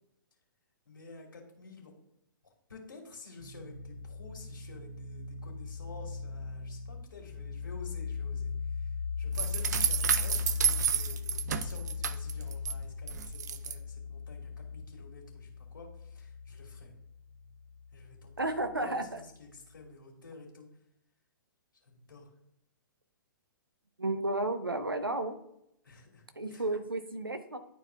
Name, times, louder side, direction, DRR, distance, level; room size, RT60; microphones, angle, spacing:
voice 1, 0.9-1.9 2.7-16.9 17.9-18.5 18.8-20.7 21.8-22.3 25.8-26.7, left 3 dB, 70° left, -2 dB, 2.6 m, -51 dB
sound 1, 3.4-18.8, left 5 dB, 15° left, 1.0 m, -39 dB
sound 2, 9.3-12.7 13.1-13.7, right 8 dB, 50° right, 0.5 m, -30 dB
voice 2, 18.4-19.2 24.0-25.4 26.3-27.6, right 2 dB, 85° right, 8 dB, 0.9 m, -32 dB
11.5 x 4.6 x 2.3 m, 0.79 s
figure-of-eight pair, 115°, 11 cm